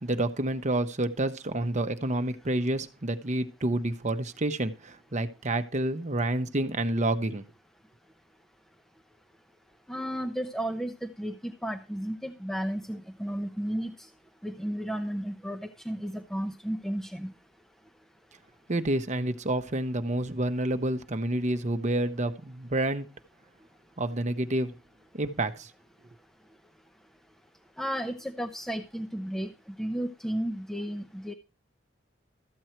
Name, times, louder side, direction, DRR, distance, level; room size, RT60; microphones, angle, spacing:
voice 1, 0.0-7.4 18.7-23.1 24.0-24.7 25.1-25.7, right 1 dB, 40° right, 9 dB, 0.9 m, -29 dB
voice 2, 9.9-13.9 14.4-17.3 27.8-29.5 29.8-31.3, equal, ahead, 7 dB, 0.6 m, -33 dB
13.5 x 7.8 x 4.4 m, 0.31 s
head